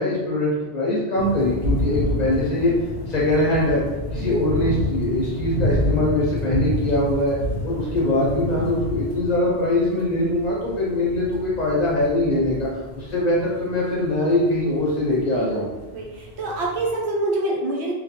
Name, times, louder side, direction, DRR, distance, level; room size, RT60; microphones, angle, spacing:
voice 1, 0.0-2.7 3.1-3.8 4.1-7.3 7.6-15.6, left 1 dB, 45° left, -6 dB, 0.7 m, -22 dB
sound 1, 1.2-17.0, left 1 dB, 75° left, 0.8 m, -29 dB
voice 2, 4.1-4.5 15.3-15.5 15.9-17.9, right 2 dB, 80° right, -3 dB, 0.9 m, -26 dB
2.3 x 2.2 x 2.8 m, 1.2 s
omnidirectional pair, 1.1 m